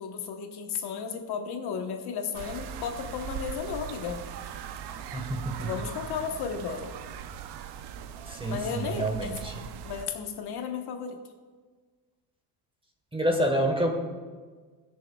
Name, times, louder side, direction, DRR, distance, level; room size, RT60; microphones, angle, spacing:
voice 1, 0.0-4.2 5.6-6.9 8.5-9.4 9.8-11.2, left 6 dB, 55° left, 4 dB, 1.2 m, -34 dB
sound 1, 2.3-10.1, right 8 dB, 60° right, 0.8 m, -40 dB
voice 2, 5.1-5.7 8.3-9.5 13.1-13.9, right 1 dB, 10° right, 3 dB, 1.3 m, -28 dB
20.5 x 6.9 x 2.3 m, 1.5 s
cardioid pair, 115°, 47 cm